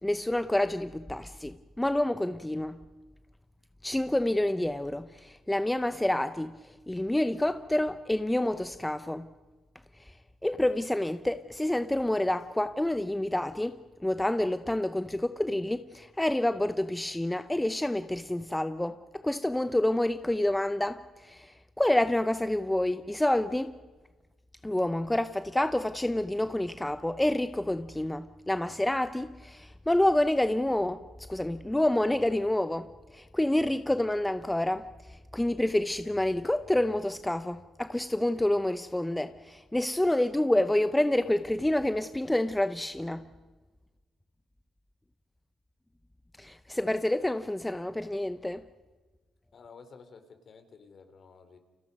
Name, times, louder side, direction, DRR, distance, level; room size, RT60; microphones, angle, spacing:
voice 1, 0.0-2.8 3.8-9.3 10.4-13.8 14.0-23.8 24.6-43.3 46.4-48.6, left 1 dB, 10° left, 0.8 m, -28 dB
voice 2, 49.5-51.6, left 5 dB, 50° left, 3.5 m, -52 dB
29.5 x 27.5 x 5.4 m
cardioid pair, 90°, 0 cm